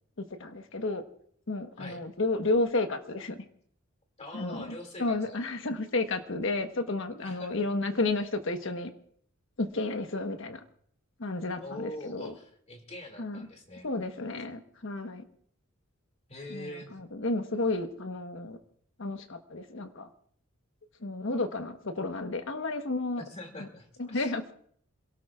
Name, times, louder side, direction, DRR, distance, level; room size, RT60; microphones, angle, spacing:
voice 1, 0.2-1.0 1.5-3.4 4.3-8.9 9.6-10.6 11.2-12.3 13.2-13.5 13.8-15.2 16.5-18.6 19.0-20.1 21.0-23.2 23.6-23.7 24.0-24.5, left 2 dB, 65° left, 7 dB, 1.2 m, -32 dB
voice 2, 4.2-5.4 7.2-7.6 11.6-13.9 16.3-17.0 23.2-24.3, left 1 dB, 35° left, 3 dB, 2.5 m, -44 dB
27.0 x 17.5 x 2.4 m, 0.63 s
head